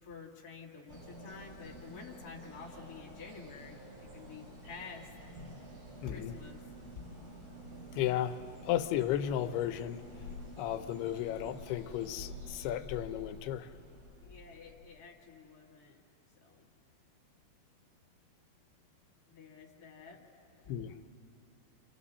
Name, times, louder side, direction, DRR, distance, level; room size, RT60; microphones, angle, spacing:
voice 1, 0.0-5.1 6.0-6.6 14.2-16.0 16.4-16.7 19.3-20.2 20.5-20.9, left 5 dB, 30° left, -1 dB, 2.2 m, -50 dB
sound 1, 0.9-14.9, left 1 dB, 70° right, 7.5 m, -49 dB
voice 2, 6.0-6.4 7.9-8.4 8.7-10.0 10.6-13.7 20.7-20.9, left 11 dB, 85° left, 9 dB, 2.7 m, -34 dB
29.5 x 27.5 x 4.2 m, 2.6 s
omnidirectional pair, 4.5 m